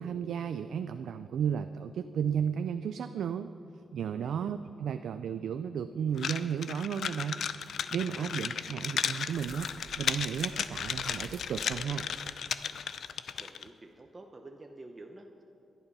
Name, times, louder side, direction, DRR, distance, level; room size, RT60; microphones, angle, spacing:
voice 1, 0.0-3.5 3.9-7.4 7.9-9.7 10.0-12.1, right 8 dB, 85° right, 10 dB, 0.4 m, -33 dB
sound 1, 6.2-13.7, left 7 dB, 70° left, 0.5 m, -35 dB
voice 2, 8.2-8.6 13.4-15.4, right 2 dB, 25° right, 3 dB, 0.8 m, -50 dB
sound 2, 9.0-11.9, right 4 dB, 65° right, 1.5 m, -51 dB
17.0 x 11.5 x 5.5 m, 2.8 s
wide cardioid pair, 145°, 0 cm